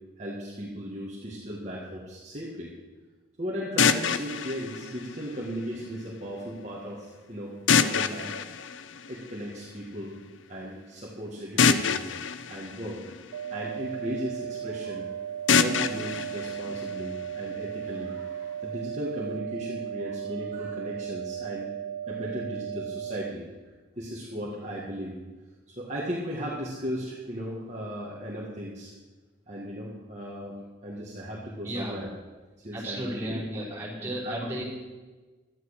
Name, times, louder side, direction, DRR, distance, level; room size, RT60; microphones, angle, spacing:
voice 1, 0.2-2.7 3.4-8.4 9.1-10.2 10.5-12.0 12.5-13.0 13.5-15.1 15.5-21.7 22.1-23.5 24.0-25.1 25.8-28.9 29.5-30.6 30.8-32.1 32.6-33.4 34.0-34.6, equal, 35° right, -5 dB, 1.6 m, -36 dB
sound 1, 3.8-5.8 7.7-9.6 11.6-13.8 15.5-17.5, left 6 dB, 75° left, 0.6 m, -26 dB
sound 2, 13.3-23.3, right 9 dB, 85° right, 0.4 m, -36 dB
voice 2, 31.6-32.0 32.7-34.6, right 1 dB, 15° right, -9 dB, 5.0 m, -34 dB
12.0 x 9.4 x 6.5 m, 1.3 s
head